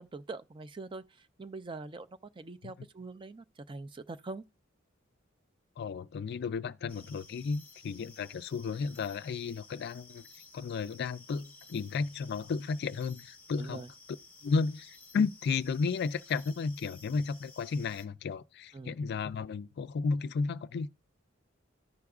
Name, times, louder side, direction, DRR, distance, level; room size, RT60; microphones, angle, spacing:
voice 1, 0.0-4.4 13.6-13.9 18.7-19.0, right 3 dB, 25° right, 0.4 m, -43 dB
voice 2, 5.8-10.3 10.5-13.8 14.4-20.9, left 5 dB, 55° left, 0.3 m, -33 dB
sound 1, 6.9-18.1, left 3 dB, 10° left, 0.8 m, -55 dB
14.0 x 4.8 x 2.3 m
head